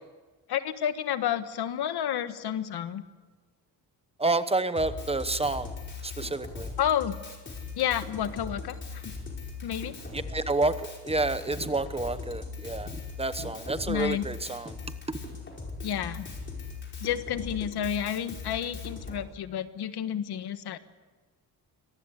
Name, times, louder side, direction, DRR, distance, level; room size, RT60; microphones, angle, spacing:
voice 1, 0.5-3.0 6.8-7.1 7.7-9.1 9.6-10.0 13.9-14.3 15.8-16.3 17.0-20.8, left 10 dB, 70° left, 11 dB, 1.5 m, -30 dB
voice 2, 4.2-5.7 6.0-6.7 10.1-14.8 15.1-15.2, right 2 dB, 15° right, 12 dB, 0.9 m, -29 dB
Drum kit, 4.8-19.2, left 4 dB, 30° left, 5.1 m, -40 dB
25.0 x 19.0 x 8.3 m, 1.4 s
cardioid pair, 150°, 40 cm